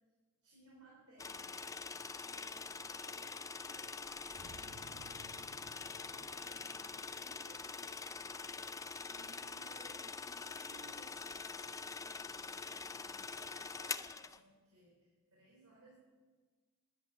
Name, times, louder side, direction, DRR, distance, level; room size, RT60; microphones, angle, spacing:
voice 1, 0.4-16.0, right 1 dB, 75° right, -4 dB, 4.2 m, -63 dB
sound 1, 1.2-14.4, left 4 dB, 15° left, 0.4 m, -45 dB
sound 2, 3.8-8.8, right 2 dB, 55° right, 0.9 m, -60 dB
13.5 x 10.5 x 9.3 m, 1.4 s
head